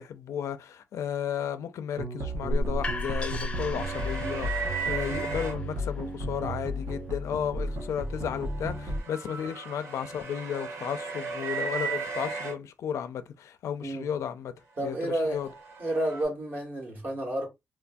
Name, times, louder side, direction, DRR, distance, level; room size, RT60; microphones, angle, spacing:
voice 1, 0.0-14.5 14.8-15.5, left 8 dB, 85° left, 0.4 m, -34 dB
sound 1, 2.0-9.0, equal, 65° right, 0.8 m, -34 dB
sound 2, 2.3-8.1, left 1 dB, 20° left, 0.4 m, -35 dB
sound 3, 3.8-5.5 7.9-12.5 14.9-16.2, right 5 dB, 90° right, 1.1 m, -36 dB
voice 2, 14.8-15.4 15.8-17.5, right 1 dB, 40° right, 1.2 m, -30 dB
3.5 x 2.5 x 2.2 m
wide cardioid pair, 175°, 5 cm